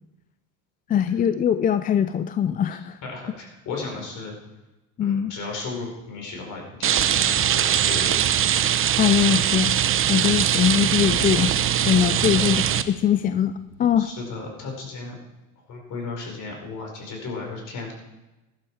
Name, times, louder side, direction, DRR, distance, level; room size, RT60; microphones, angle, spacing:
voice 1, 0.9-3.0 5.0-5.3 9.0-9.8 10.1-11.5 11.8-14.1, left 9 dB, 25° left, 12 dB, 0.4 m, -22 dB
voice 2, 3.0-4.3 5.0-8.2 12.2-12.4 14.0-15.1 15.7-17.9, left 4 dB, 50° left, 1 dB, 5.1 m, -35 dB
Rain, 6.8-12.8, right 10 dB, 35° right, 0.8 m, -21 dB
Wild animals, 9.7-14.7, left 2 dB, 65° left, 2.4 m, -41 dB
15.5 x 11.5 x 4.8 m, 1.0 s
supercardioid pair, 105°, 39 cm